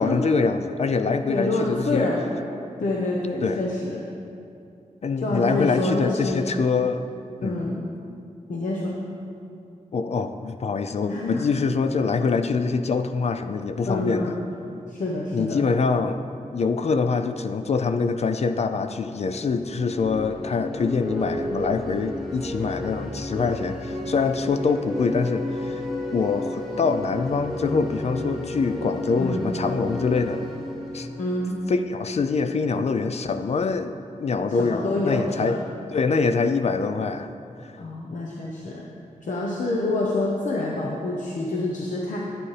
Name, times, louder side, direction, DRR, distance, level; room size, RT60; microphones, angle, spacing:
voice 1, 0.0-2.1 3.4-3.6 5.0-7.1 7.4-7.7 9.9-14.3 15.3-16.2 16.5-25.8 26.1-30.4 30.9-31.1 31.7-33.9 34.2-35.6 35.9-37.3 37.6-37.7, left 4 dB, 55° left, 9 dB, 0.4 m, -24 dB
voice 2, 1.3-2.3 2.8-4.0 5.2-6.5 7.4-7.8 8.5-9.0 11.1-11.4 13.8-14.4 14.9-15.6 29.2-29.5 31.2-31.6 34.6-35.6 37.8-38.8 39.2-42.2, left 2 dB, 70° left, -3 dB, 0.9 m, -27 dB
sound 1, 19.5-32.2, left 1 dB, ahead, 1.5 m, -32 dB
11.0 x 8.9 x 3.3 m, 2.5 s
wide cardioid pair, 145°, 13 cm